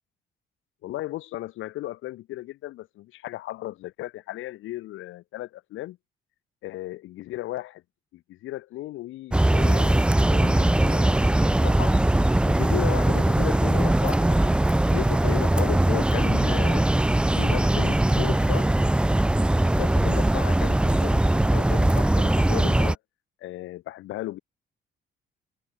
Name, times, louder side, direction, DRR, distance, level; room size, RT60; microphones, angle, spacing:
voice 1, 0.8-6.0 6.6-7.8 8.1-12.0 12.4-14.5 14.9-16.9 17.3-18.7 19.7-23.0 23.4-24.4, left 16 dB, 90° left, 2.3 m, -35 dB
sound 1, 9.3-23.0, right 1 dB, 5° right, 0.4 m, -21 dB
cardioid pair, 90°, 20 cm